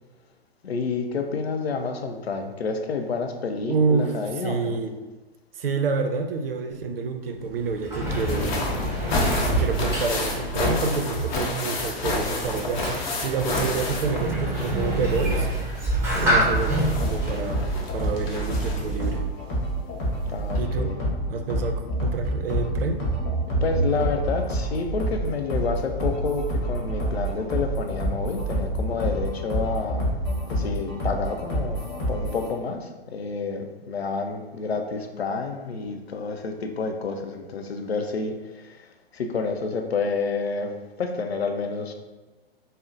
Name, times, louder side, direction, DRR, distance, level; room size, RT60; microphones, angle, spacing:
voice 1, 0.6-4.8 16.1-16.5 20.3-21.0 23.6-30.0 30.5-38.9 39.1-40.7 41.0-41.9, left 4 dB, 80° left, 5 dB, 0.5 m, -29 dB
voice 2, 3.6-4.2 4.4-5.0 5.6-8.7 9.5-15.5 16.2-19.2 20.6-21.0 21.3-23.0, right 4 dB, 65° right, 6 dB, 0.5 m, -28 dB
Sliding door, 7.4-18.8, right 1 dB, 10° right, 0.9 m, -28 dB
sound 1, 8.1-14.8 15.1-19.1 20.1-20.2 20.6-20.7, left 2 dB, 50° left, 0.7 m, -30 dB
sound 2, 16.5-32.5, right 1 dB, 30° left, 1.4 m, -27 dB
5.1 x 2.0 x 2.6 m, 1.2 s
figure-of-eight pair, 105°, 31 cm